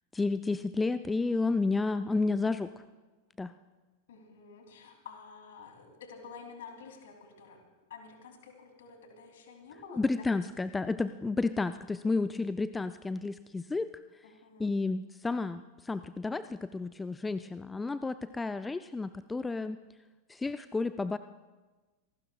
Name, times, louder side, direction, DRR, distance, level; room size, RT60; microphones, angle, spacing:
voice 1, 0.1-2.8 3.4-3.5 10.0-13.9 14.6-19.8 20.3-21.2, left 3 dB, 10° left, 13 dB, 0.4 m, -31 dB
voice 2, 4.1-7.6 7.9-10.5 14.2-14.7, left 5 dB, 60° left, 4 dB, 2.9 m, -50 dB
27.5 x 18.0 x 2.3 m, 1.2 s
figure-of-eight pair, 90°, 0 cm